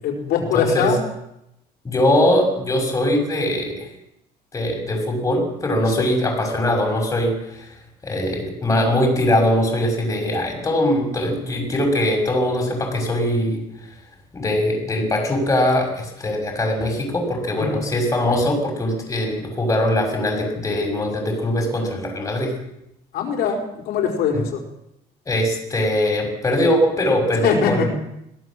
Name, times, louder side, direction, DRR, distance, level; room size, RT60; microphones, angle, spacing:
voice 1, 0.0-1.0 5.9-6.0 17.6-17.9 23.1-24.6 27.3-27.9, left 6 dB, 70° left, 1 dB, 4.7 m, -22 dB
voice 2, 0.5-0.9 1.8-3.9 4.5-7.7 8.0-13.6 14.3-22.5 24.3-24.4 25.3-27.9, left 1 dB, 20° left, 1 dB, 6.2 m, -21 dB
22.5 x 17.0 x 7.5 m, 0.83 s
cardioid pair, 150°, 16 cm